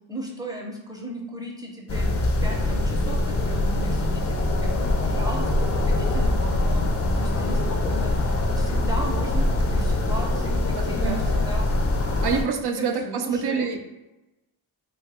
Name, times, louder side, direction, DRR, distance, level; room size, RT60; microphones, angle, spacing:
voice 1, 0.1-6.9 7.2-11.6 12.8-13.7, equal, 10° right, -1 dB, 0.7 m, -36 dB
sound 1, 1.9-12.4, left 1 dB, 30° left, 0.5 m, -23 dB
voice 2, 10.7-11.2 12.2-13.8, right 5 dB, 55° right, 5 dB, 0.5 m, -26 dB
2.8 x 2.3 x 3.5 m, 0.99 s
cardioid pair, 65°, 47 cm